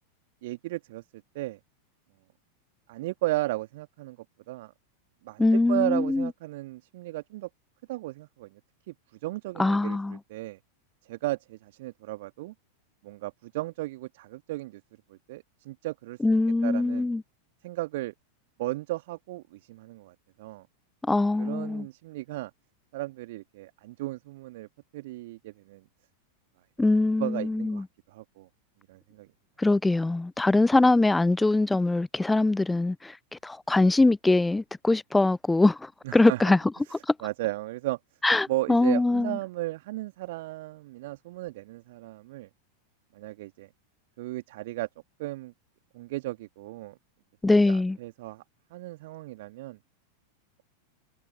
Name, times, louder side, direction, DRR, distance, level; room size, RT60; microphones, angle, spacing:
voice 1, 0.4-1.0 1.3-1.6 2.9-4.2 4.5-4.7 5.2-7.5 7.9-8.6 8.9-9.0 9.2-10.6 11.1-12.5 13.0-14.8 15.1-16.2 16.6-17.1 17.6-18.1 18.6-20.7 21.4-22.5 22.9-24.7 24.9-25.8 27.2-28.5 28.9-29.3 36.0-36.5 37.2-38.0 38.5-42.5 43.1-43.7 44.2-44.9 45.2-45.5 45.9-47.0 47.5-48.4 48.7-49.8, right 18 dB, 50° right, 2.0 m, -35 dB
voice 2, 5.4-6.3 9.6-10.2 16.2-17.2 21.0-21.9 26.8-27.8 29.6-36.6 36.9-37.1 38.2-39.4 47.4-48.0, left 2 dB, 5° left, 0.3 m, -23 dB
figure-of-eight pair, 90°, 0 cm